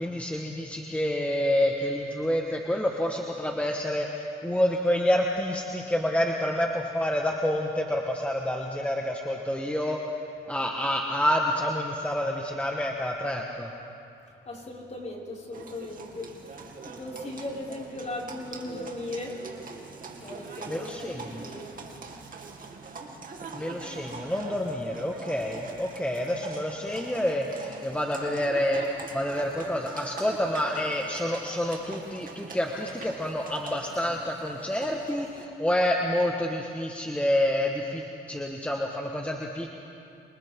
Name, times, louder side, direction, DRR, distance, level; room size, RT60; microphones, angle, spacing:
voice 1, 0.0-10.0 10.5-13.7 20.7-21.5 23.5-39.7, left 1 dB, 5° left, 0 dB, 1.5 m, -28 dB
voice 2, 14.5-16.3 16.8-19.4 20.2-21.1 21.4-21.7, left 2 dB, 35° left, -5 dB, 5.7 m, -37 dB
Livestock farm animals working animals, 15.5-35.4, right 4 dB, 45° right, 2.5 m, -43 dB
29.0 x 27.5 x 3.8 m, 2.7 s
cardioid pair, 90°, 20 cm